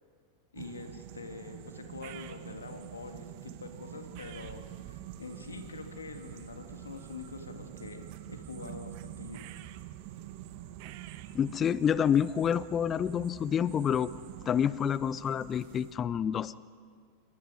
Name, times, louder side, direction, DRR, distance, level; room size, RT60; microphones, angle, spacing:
voice 1, 0.5-9.4, left 4 dB, 70° left, 5 dB, 2.2 m, -45 dB
sound 1, 0.5-15.9, right 13 dB, 45° right, 1.0 m, -46 dB
voice 2, 11.3-14.1 14.5-16.5, left 8 dB, 25° left, 19 dB, 0.6 m, -28 dB
27.5 x 24.0 x 4.9 m, 2.1 s
figure-of-eight pair, 90°, 0 cm